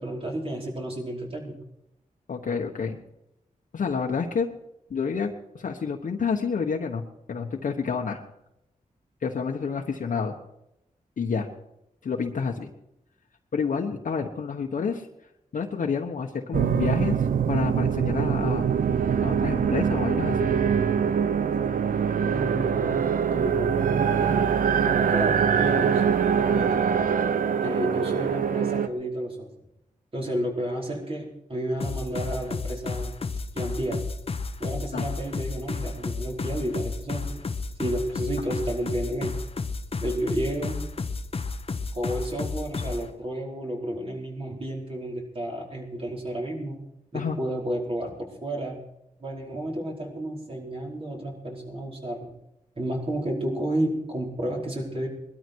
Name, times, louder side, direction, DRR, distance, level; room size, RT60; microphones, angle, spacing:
voice 1, 0.0-1.6 22.3-23.1 23.3-26.0 26.4-26.8 27.6-29.5 30.1-33.1 33.5-34.1 34.6-37.4 37.8-39.4 40.0-40.8 41.9-46.8 47.1-48.8 49.2-52.3 52.8-55.1, right 1 dB, 40° right, -2 dB, 4.8 m, -31 dB
voice 2, 2.3-3.0 3.7-4.5 4.9-8.2 9.2-10.4 11.2-11.5 12.0-12.7 13.5-15.1 15.5-17.2 17.5-18.7 19.2-20.5 34.9-35.0 38.5-38.6 47.1-47.4, left 5 dB, 70° left, 0 dB, 1.2 m, -29 dB
sound 1, 16.5-28.9, right 7 dB, 80° right, 0.7 m, -23 dB
sound 2, 31.8-43.0, left 4 dB, 45° left, 1.0 m, -32 dB
20.0 x 13.0 x 4.7 m, 0.84 s
wide cardioid pair, 90°, 14 cm